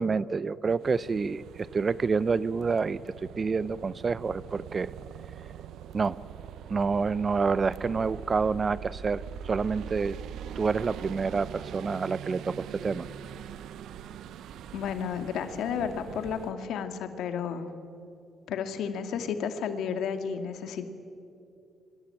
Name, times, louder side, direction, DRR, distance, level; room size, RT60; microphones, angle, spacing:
voice 1, 0.0-3.0 3.4-4.9 5.9-6.2 6.7-10.2 10.6-13.1, right 4 dB, 35° right, 19 dB, 0.7 m, -28 dB
sound 1, 0.8-16.5, right 9 dB, 80° right, 0.9 m, -42 dB
voice 2, 14.7-17.7 18.5-20.9, left 7 dB, 80° left, 8 dB, 2.3 m, -32 dB
26.5 x 23.5 x 9.0 m, 2.6 s
cardioid pair, 90°, 0 cm